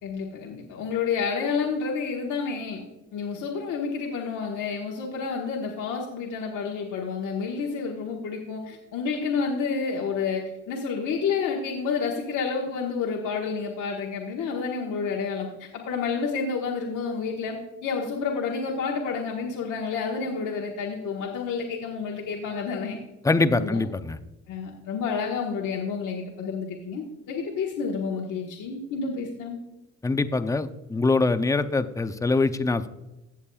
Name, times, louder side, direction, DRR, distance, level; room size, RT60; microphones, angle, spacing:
voice 1, 0.0-2.8 3.1-10.4 10.7-17.6 17.8-23.0 23.5-23.8 24.5-29.6, left 5 dB, 80° left, -1 dB, 1.3 m, -29 dB
voice 2, 23.2-24.2 30.0-32.9, left 3 dB, 10° left, 10 dB, 0.5 m, -23 dB
15.5 x 7.2 x 2.3 m, 1.0 s
cardioid pair, 90°, 30 cm